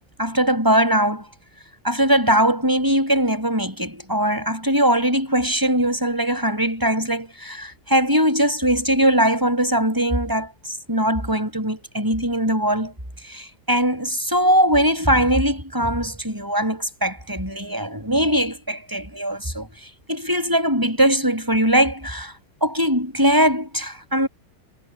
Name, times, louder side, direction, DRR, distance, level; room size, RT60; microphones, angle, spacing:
voice 1, 0.2-1.3 1.8-12.9 13.3-19.7 20.1-22.3 22.6-24.3, right 1 dB, 10° right, 6.2 m, -21 dB
omnidirectional pair, 2.4 m